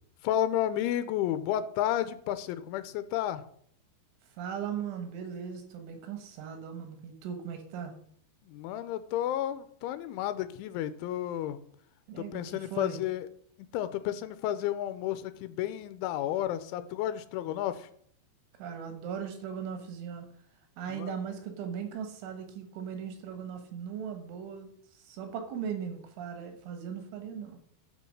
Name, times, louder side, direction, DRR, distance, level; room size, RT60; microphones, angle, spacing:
voice 1, 0.2-3.5 8.4-11.6 12.2-13.3 13.7-17.9 20.9-21.1, left 12 dB, 90° left, 12 dB, 3.1 m, -32 dB
voice 2, 4.3-7.9 12.1-13.0 18.6-20.3 20.8-27.6, right 7 dB, 85° right, 6 dB, 3.8 m, -38 dB
12.0 x 5.3 x 6.4 m, 0.64 s
omnidirectional pair, 5.4 m